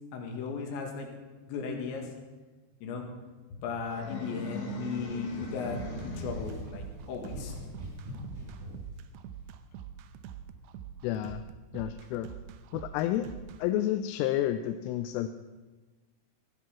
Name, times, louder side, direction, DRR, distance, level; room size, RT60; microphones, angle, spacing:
voice 1, 0.1-1.1 1.5-2.1 2.8-3.0 3.5-7.6, left 5 dB, 70° left, 1 dB, 4.0 m, -36 dB
sound 1, 3.9-6.8, left 1 dB, 50° left, 1.9 m, -40 dB
sound 2, 4.9-9.0, equal, 55° right, 7.5 m, -43 dB
sound 3, 5.7-13.6, right 9 dB, 85° right, 2.5 m, -45 dB
voice 2, 11.0-11.4 11.7-12.3 12.7-13.3 13.6-15.3, left 12 dB, 85° left, 9 dB, 3.1 m, -30 dB
15.5 x 11.0 x 6.0 m, 1.2 s
omnidirectional pair, 5.7 m